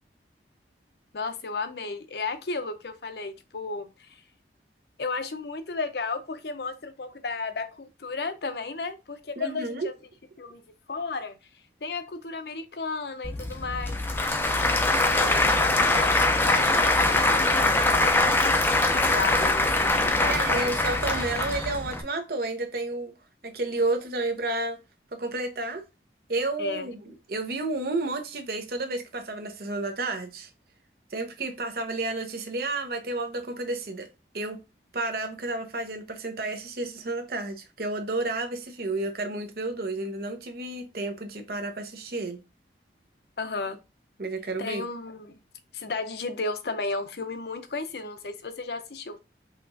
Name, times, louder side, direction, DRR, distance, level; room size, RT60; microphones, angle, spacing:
voice 1, 1.1-4.2 5.0-9.9 10.4-10.6 10.9-11.4 11.8-14.3 14.7-20.7 26.6-26.9 43.4-43.8 44.6-45.3 45.7-49.2, left 3 dB, 65° left, 0.7 m, -34 dB
voice 2, 9.4-9.9 20.3-23.1 23.4-24.8 25.2-25.8 26.3-30.5 31.1-34.1 34.3-34.6 34.9-42.4 44.2-44.8, right 2 dB, 55° right, 0.8 m, -31 dB
Applause / Crowd, 13.2-22.0, left 2 dB, 10° left, 0.5 m, -23 dB
5.7 x 2.9 x 2.6 m
head